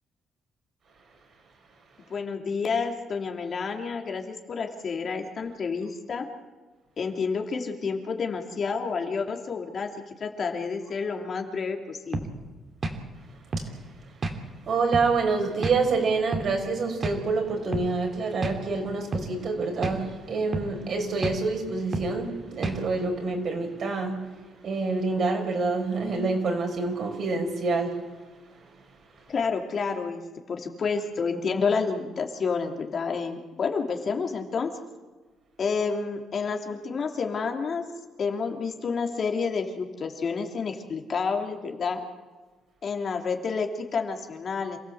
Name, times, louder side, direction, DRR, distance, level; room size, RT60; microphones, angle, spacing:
voice 1, 2.1-6.3 7.0-9.9 10.2-12.3 29.3-30.2 30.5-34.7 35.6-37.8 38.2-42.0 42.8-44.8, left 5 dB, 50° left, 3 dB, 3.1 m, -29 dB
sound 1, 12.1-12.3 12.8-13.0 13.5-13.7 14.2-14.4 14.9-15.1 15.6-15.8 16.3-16.5 17.0-17.2 17.7-17.9 18.4-18.6 19.1-19.3 19.8-20.0 20.5-20.7 21.2-21.4 21.9-22.1 22.6-22.8, right 2 dB, 40° right, 2.9 m, -30 dB
voice 2, 14.6-24.2 24.6-28.0, right 3 dB, 60° right, 3 dB, 5.9 m, -27 dB
27.5 x 16.0 x 8.0 m, 1.3 s
cardioid pair, 90°, 0 cm